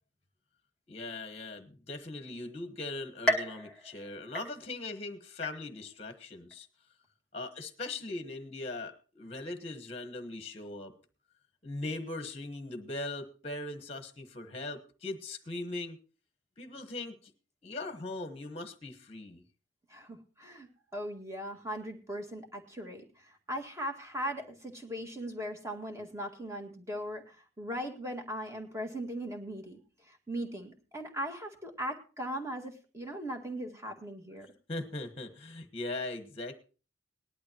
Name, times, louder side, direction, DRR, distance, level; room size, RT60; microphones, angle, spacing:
voice 1, 0.9-6.7 7.3-10.9 11.6-16.0 16.6-17.3 17.6-19.4 34.7-36.6, left 2 dB, 30° left, 7 dB, 1.2 m, -40 dB
sound 1, 3.3-5.0 5.4-6.0 6.5-6.6 7.6-7.7, equal, 5° left, 2.0 m, -34 dB
voice 2, 19.9-34.5, equal, 15° right, 3 dB, 1.9 m, -39 dB
19.0 x 11.5 x 2.9 m, 0.35 s
head